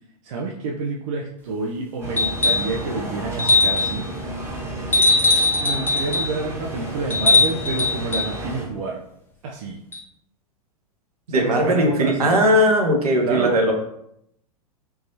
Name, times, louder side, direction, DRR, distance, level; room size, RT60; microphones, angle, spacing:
voice 1, 0.2-4.0 5.6-9.0 9.4-9.8 11.3-12.3 13.2-13.6, right 3 dB, 55° right, 0 dB, 0.5 m, -28 dB
sound 1, 2.0-8.6, right 1 dB, 10° right, 1.1 m, -32 dB
sound 2, 2.2-2.7 3.4-4.0 4.9-6.3 7.1-8.3 9.9-10.0, left 3 dB, 10° left, 0.7 m, -19 dB
voice 2, 11.3-13.7, equal, 75° right, 1 dB, 0.9 m, -18 dB
3.7 x 2.7 x 2.7 m, 0.76 s
figure-of-eight pair, 95°, 20 cm